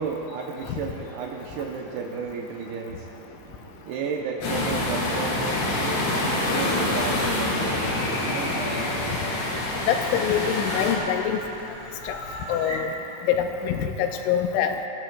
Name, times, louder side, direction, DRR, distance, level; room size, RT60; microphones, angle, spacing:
voice 1, 0.0-8.9, right 5 dB, 80° right, 0 dB, 2.3 m, -34 dB
sound 1, 4.4-10.9, left 1 dB, 60° left, 4.9 m, -26 dB
sound 2, 7.4-12.8, left 1 dB, 45° left, 0.7 m, -36 dB
voice 2, 9.9-11.4 12.1-12.2 12.5-12.9 13.3-14.8, left 9 dB, 90° left, 5 dB, 3.2 m, -24 dB
23.5 x 19.5 x 2.3 m, 2.8 s
omnidirectional pair, 5.4 m